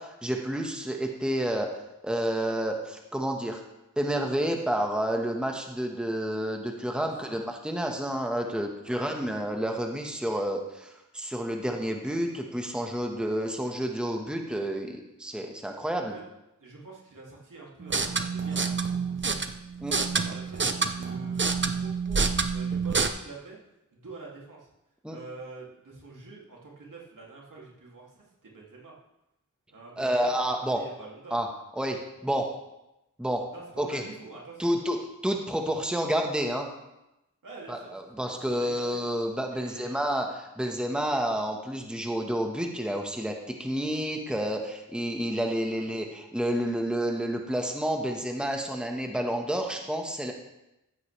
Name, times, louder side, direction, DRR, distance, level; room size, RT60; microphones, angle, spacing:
voice 1, 0.0-1.7 2.0-3.6 4.0-16.1 19.8-20.0 25.0-25.2 30.0-30.8 31.3-31.5 31.8-32.5 33.2-33.4 33.8-34.0 34.6-35.0 35.2-36.7 37.7-40.3 40.6-43.3 43.6-50.3, right 1 dB, 5° right, 2 dB, 1.4 m, -29 dB
voice 2, 8.8-9.2 16.0-16.2 16.6-19.5 20.0-20.6 20.9-23.6 23.9-24.7 25.1-28.9 29.7-31.4 33.5-34.7 37.4-39.0 39.5-40.1 45.7-45.9, right 3 dB, 70° right, -3 dB, 2.9 m, -46 dB
sound 1, 17.8-23.1, right 5 dB, 35° right, 0.8 m, -28 dB
14.5 x 8.5 x 3.4 m, 0.92 s
cardioid pair, 55°, 33 cm